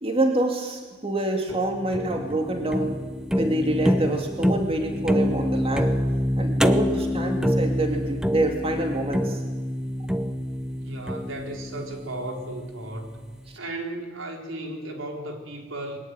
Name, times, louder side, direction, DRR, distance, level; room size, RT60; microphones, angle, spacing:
voice 1, 0.0-3.0 3.3-5.9 6.4-9.4, right 1 dB, 30° right, 3 dB, 2.4 m, -26 dB
sound 1, 1.5-12.7, equal, 5° right, 0.9 m, -26 dB
voice 2, 10.8-13.2 13.6-16.0, right 1 dB, 80° right, 2 dB, 4.3 m, -35 dB
22.0 x 19.0 x 9.7 m, 1.3 s
head